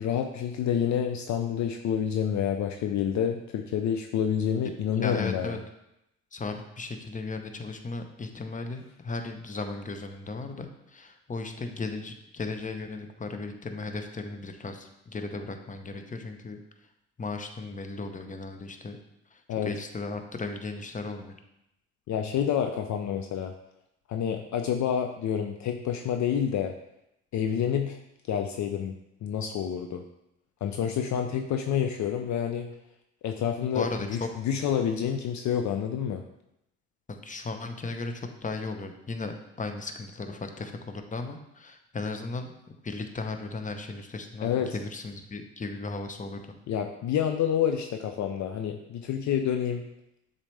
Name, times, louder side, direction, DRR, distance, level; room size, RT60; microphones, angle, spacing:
voice 1, 0.0-5.6 19.5-19.7 22.1-23.5 24.1-26.7 27.3-28.0 28.3-30.0 30.6-32.7 33.2-36.2 44.4-44.7 46.7-49.8, left 8 dB, 55° left, 5 dB, 0.6 m, -28 dB
voice 2, 5.0-5.6 6.3-16.6 17.2-19.0 19.3-21.3 33.7-34.3 37.1-46.4, left 3 dB, 20° left, 6 dB, 0.9 m, -36 dB
7.0 x 4.1 x 3.3 m, 0.83 s
hypercardioid pair, 60°, 35 cm